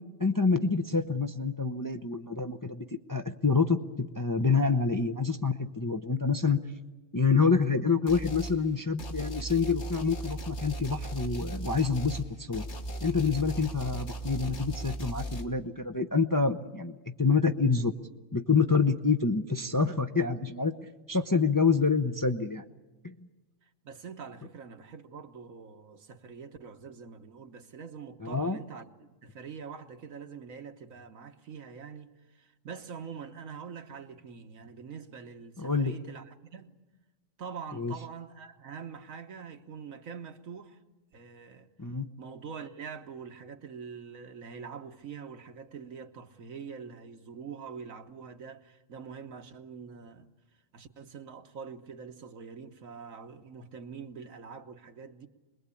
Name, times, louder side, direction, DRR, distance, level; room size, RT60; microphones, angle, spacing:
voice 1, 0.2-6.6 7.1-12.6 13.0-17.9 18.3-20.7 21.1-22.6 23.0-23.1 28.2-28.6 35.6-35.9 37.8-37.9 41.8-42.1, left 4 dB, 20° left, 0.6 m, -27 dB
sound 1, 8.1-8.6 9.0-15.5, right 2 dB, 55° left, 2.1 m, -37 dB
voice 2, 23.6-36.7 37.4-40.8 41.1-41.7 42.2-50.3 50.7-55.3, right 6 dB, 80° right, 1.7 m, -44 dB
26.0 x 21.0 x 8.4 m
omnidirectional pair, 1.4 m